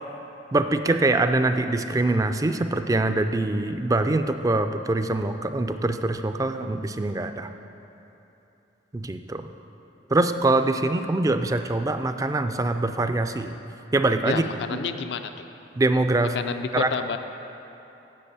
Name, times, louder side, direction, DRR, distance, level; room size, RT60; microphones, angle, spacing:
voice 1, 0.5-7.5 8.9-9.5 10.1-13.6 13.9-14.4 15.8-16.4 16.7-16.9, right 2 dB, 20° right, 8 dB, 0.3 m, -24 dB
voice 2, 14.2-15.5 16.2-17.2, left 5 dB, 65° left, 9 dB, 0.4 m, -30 dB
7.7 x 6.9 x 8.3 m, 3.0 s
head